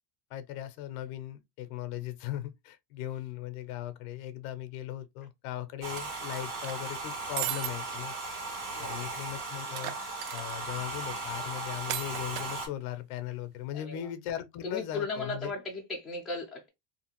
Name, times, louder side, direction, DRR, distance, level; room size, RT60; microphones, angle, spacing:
voice 1, 0.3-8.1 8.8-10.0 10.3-15.5, left 12 dB, 60° left, 0.6 m, -38 dB
Domestic sounds home sounds, 5.8-12.7, right 2 dB, 50° right, 1.5 m, -37 dB
sound 1, 6.0-6.9 7.4-7.7 8.1-8.2 8.5-8.6 9.7-10.6 11.9-12.5, right 14 dB, 70° right, 0.5 m, -36 dB
voice 2, 8.7-9.1 13.7-14.1 14.6-16.7, left 3 dB, ahead, 0.4 m, -36 dB
2.7 x 2.6 x 2.8 m
cardioid pair, 160°, 50 cm